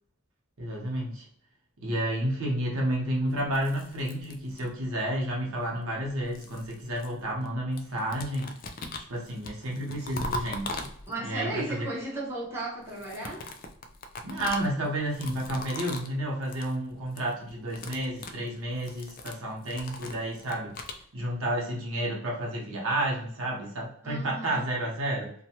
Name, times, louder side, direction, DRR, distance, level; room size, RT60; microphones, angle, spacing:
voice 1, 0.6-1.3 1.8-8.5 9.1-10.9 11.2-11.9 14.2-20.7 21.1-25.3, right 1 dB, 85° right, -3 dB, 0.9 m, -31 dB
sound 1, 3.4-5.0 5.9-7.5 7.8-11.4 12.8-16.2 16.4-16.8 17.0-17.3 17.6-21.0, left 2 dB, 40° left, 0.3 m, -40 dB
voice 2, 11.1-13.5 24.0-24.7, right 2 dB, 10° right, -6 dB, 0.8 m, -35 dB
2.7 x 2.2 x 2.8 m, 0.63 s
head